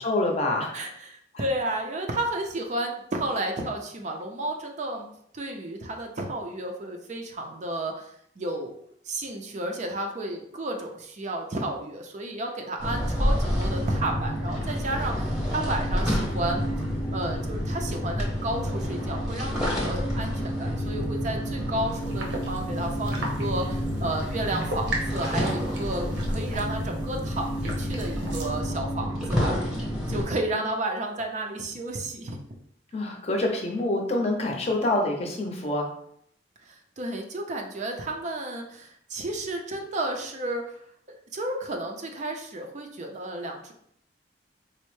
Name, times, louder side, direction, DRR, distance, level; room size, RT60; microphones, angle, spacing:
voice 1, 0.0-0.9 1.3-1.4 32.9-35.9, left 2 dB, 35° left, 1 dB, 0.6 m, -26 dB
voice 2, 0.7-5.1 5.3-8.8 9.1-16.7 17.1-29.6 30.1-32.4 36.7-40.8 41.3-43.7, right 1 dB, 40° right, 3 dB, 0.4 m, -32 dB
sound 1, 12.8-30.2, equal, 5° right, 0.8 m, -29 dB
sound 2, 22.0-28.6, right 1 dB, 75° right, 0.8 m, -36 dB
4.2 x 2.0 x 3.1 m, 0.69 s
head